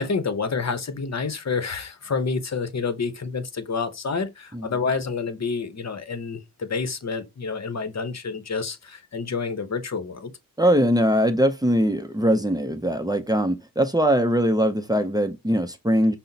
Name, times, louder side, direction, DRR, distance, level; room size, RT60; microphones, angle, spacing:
voice 1, 0.0-10.3, left 4 dB, 50° left, 0.8 m, -28 dB
voice 2, 10.6-16.1, equal, 10° right, 0.5 m, -21 dB
5.4 x 2.1 x 2.7 m
cardioid pair, 55°, 35 cm